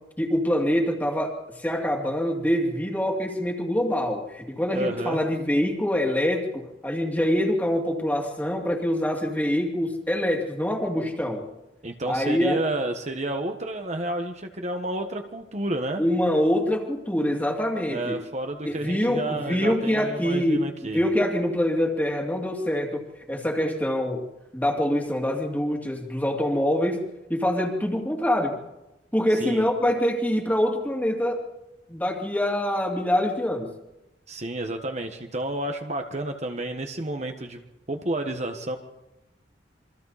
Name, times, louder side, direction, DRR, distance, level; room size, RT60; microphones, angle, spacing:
voice 1, 0.2-1.4 1.6-11.5 12.1-12.6 16.0-18.2 18.6-20.6 20.9-24.2 24.5-28.6 29.1-31.4 31.9-33.7, left 1 dB, 10° left, 1 dB, 2.7 m, -25 dB
voice 2, 4.7-5.2 11.8-16.0 17.9-21.0 29.4-29.7 34.3-37.6 37.9-38.8, right 1 dB, 40° right, 4 dB, 1.5 m, -30 dB
27.5 x 24.0 x 4.2 m, 0.98 s
head